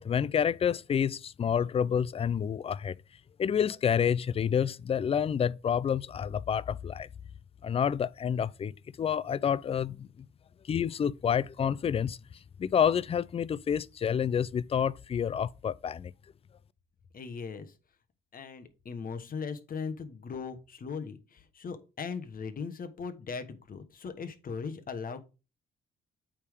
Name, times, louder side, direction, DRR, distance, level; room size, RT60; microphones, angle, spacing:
voice 1, 0.0-3.0 3.4-7.1 7.6-10.1 10.6-12.2 12.6-16.1, left 8 dB, 30° left, 0.3 m, -28 dB
voice 2, 17.1-17.7 18.3-25.2, left 5 dB, 45° left, 1.2 m, -39 dB
8.5 x 3.6 x 4.9 m
cardioid pair, 90°, 20 cm